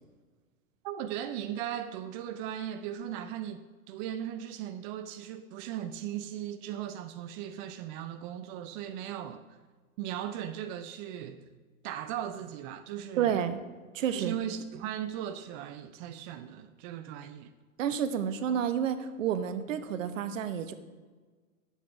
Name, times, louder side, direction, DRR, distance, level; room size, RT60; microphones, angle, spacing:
voice 1, 0.8-9.4 10.0-11.5 11.8-13.4 14.1-17.5, right 10 dB, 35° right, 0.6 m, -38 dB
voice 2, 13.2-13.6 13.9-14.3 17.8-20.7, right 8 dB, 65° right, 1.1 m, -30 dB
10.5 x 8.0 x 4.5 m
hypercardioid pair, 115°, 41 cm